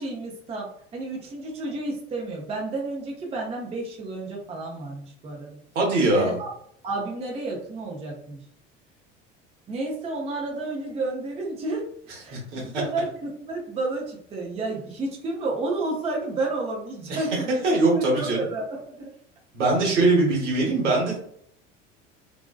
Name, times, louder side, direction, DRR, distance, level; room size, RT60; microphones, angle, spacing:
voice 1, 0.0-5.6 6.1-6.5 6.8-8.4 9.7-17.5 17.9-19.1 19.8-20.0, right 2 dB, 15° right, -1 dB, 0.5 m, -31 dB
voice 2, 5.7-6.4 12.3-12.8 17.6-18.4 19.5-21.2, right 2 dB, 70° right, -3 dB, 1.0 m, -22 dB
2.6 x 2.2 x 2.2 m, 0.66 s
figure-of-eight pair, 65°, 37 cm